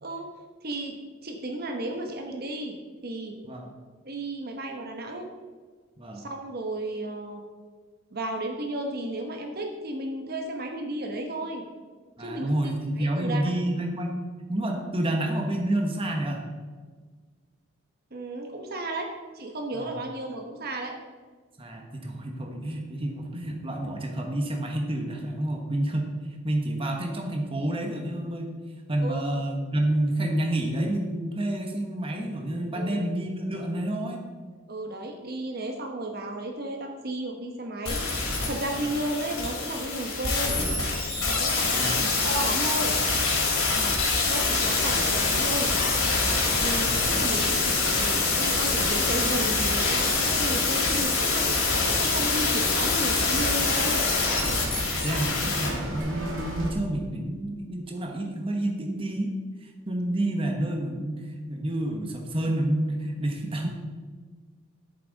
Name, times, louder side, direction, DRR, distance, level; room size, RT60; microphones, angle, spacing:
voice 1, 0.6-2.8 3.0-3.3 4.0-5.3 6.1-7.4 8.1-11.6 12.2-12.7 13.0-13.5 18.1-19.1 19.3-20.9 29.0-29.4 32.7-33.0 34.7-38.1 38.4-40.6 41.4-42.9 44.3-45.7 46.6-54.1, right 1 dB, 45° right, 3 dB, 1.1 m, -33 dB
voice 2, 12.2-14.2 14.5-16.4 19.7-19.9 21.6-28.6 28.9-34.2 38.8-39.0 41.7-42.2 43.7-44.0 46.5-47.1 54.7-59.3 59.6-63.7, right 1 dB, 25° right, 2 dB, 1.2 m, -29 dB
sound 1, 37.9-55.7 56.0-56.1, left 3 dB, 80° left, 3.4 m, -25 dB
sound 2, 44.7-56.7, right 1 dB, 70° right, 2.1 m, -37 dB
11.0 x 8.5 x 4.0 m, 1.5 s
head